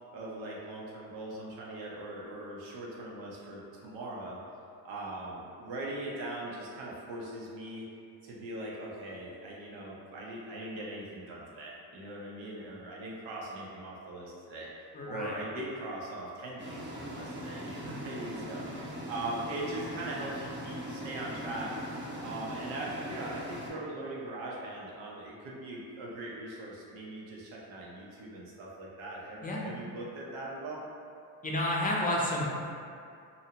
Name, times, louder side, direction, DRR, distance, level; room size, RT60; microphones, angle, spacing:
voice 1, 0.1-4.4 4.8-7.8 8.2-21.7 22.2-30.8, right 1 dB, 85° right, -4 dB, 0.7 m, -40 dB
voice 2, 14.9-15.3 29.4-29.7 31.4-32.4, left 1 dB, 20° left, -4 dB, 0.6 m, -30 dB
sound 1, 16.6-23.7, equal, 25° right, 0.6 m, -40 dB
2.6 x 2.0 x 2.7 m, 2.5 s
supercardioid pair, 70°, 45 cm